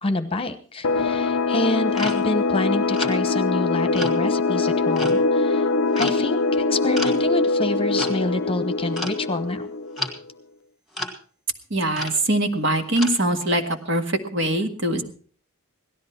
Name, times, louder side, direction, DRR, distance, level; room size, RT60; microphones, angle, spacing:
voice 1, 0.0-5.7 5.9-9.7, left 2 dB, 25° left, 10 dB, 1.0 m, -27 dB
sound 1, 0.8-10.2, left 3 dB, 60° left, 0.6 m, -23 dB
sound 2, 2.0-2.4 3.0-3.2 3.9-4.2 5.0-5.3 6.0-6.3 6.9-7.3 8.0-8.2 9.0-9.2 10.0-10.2 10.9-11.1 11.9-12.2 13.0-13.2, left 1 dB, ahead, 2.0 m, -31 dB
voice 2, 11.7-14.0 14.3-15.0, right 1 dB, 55° right, 5 dB, 1.8 m, -22 dB
17.5 x 13.5 x 4.5 m, 0.43 s
head